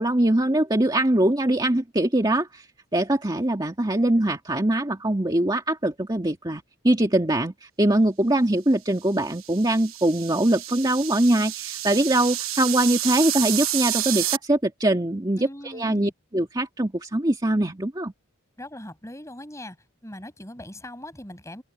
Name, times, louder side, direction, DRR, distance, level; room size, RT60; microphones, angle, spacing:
voice 1, 0.0-2.7 2.9-18.1, right 1 dB, 20° right, 2.1 m, -22 dB
sound 1, 9.2-14.4, right 13 dB, 85° right, 1.2 m, -29 dB
voice 2, 15.4-16.1 18.6-19.8 20.0-21.6, left 1 dB, 15° left, 7.6 m, -40 dB
open air
head